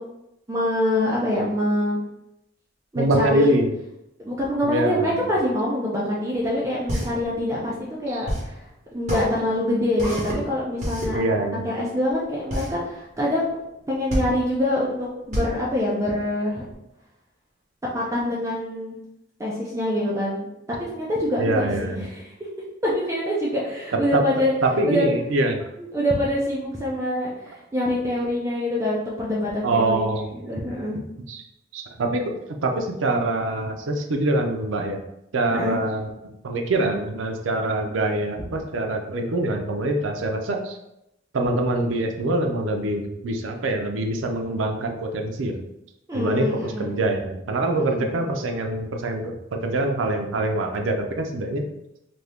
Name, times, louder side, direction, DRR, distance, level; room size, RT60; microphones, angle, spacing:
voice 1, 0.5-2.0 2.9-3.5 4.2-7.7 8.0-8.6 8.9-13.6 13.9-16.6 17.9-19.0 19.4-20.5 20.9-22.3 22.8-24.5 24.9-25.1 25.8-30.0 30.3-31.0 35.5-35.8 46.1-47.1 47.9-48.2, left 1 dB, 15° right, -5 dB, 0.5 m, -25 dB
voice 2, 3.0-3.7 4.6-5.2 8.1-8.2 11.1-11.7 21.4-22.0 24.1-24.2 24.6-25.6 29.6-30.3 31.3-31.4 31.7-32.2 32.6-35.0 35.3-40.8 41.3-45.6 46.1-51.7, right 2 dB, 80° right, 3 dB, 0.5 m, -24 dB
sound 1, 6.4-16.7, equal, 40° right, 1.1 m, -30 dB
2.7 x 2.6 x 3.4 m, 0.86 s
head